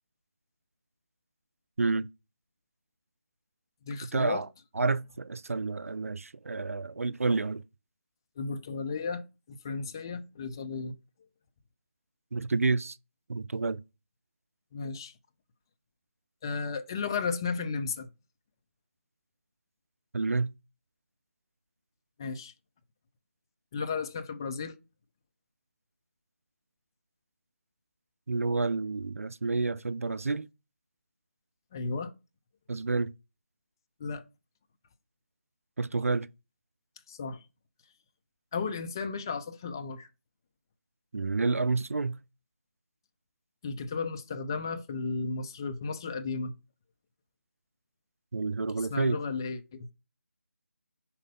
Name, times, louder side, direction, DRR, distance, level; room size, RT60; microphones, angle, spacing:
voice 1, 1.8-2.1 4.0-4.5 4.8-7.6 12.3-13.0 13.3-13.8 20.1-20.5 28.3-30.5 32.7-33.1 35.8-36.3 41.1-42.2 48.3-49.2, right 3 dB, 70° right, 0.4 m, -29 dB
voice 2, 3.9-4.4 8.4-10.9 14.7-15.1 16.4-18.1 22.2-22.5 23.7-24.8 31.7-32.1 34.0-34.2 37.1-37.4 38.5-40.1 43.6-46.5 48.8-49.9, left 4 dB, 15° left, 0.4 m, -34 dB
5.0 x 4.2 x 5.3 m
figure-of-eight pair, 160°, 8 cm